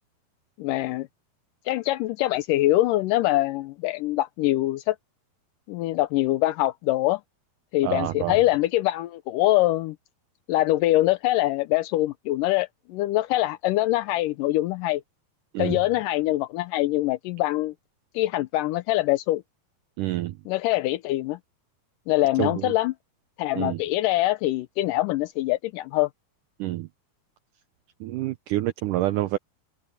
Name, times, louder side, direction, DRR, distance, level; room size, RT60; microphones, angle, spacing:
voice 1, 0.6-1.1 1.7-5.0 5.7-7.2 7.7-10.0 10.5-15.0 15.6-17.7 18.1-19.4 20.5-21.4 22.1-22.9 23.4-26.1, left 16 dB, 80° left, 2.0 m, -24 dB
voice 2, 7.8-8.4 15.5-15.8 20.0-20.4 22.4-22.7 23.5-23.8 26.6-26.9 28.0-29.4, right 15 dB, 85° right, 1.9 m, -27 dB
open air
omnidirectional pair, 4.4 m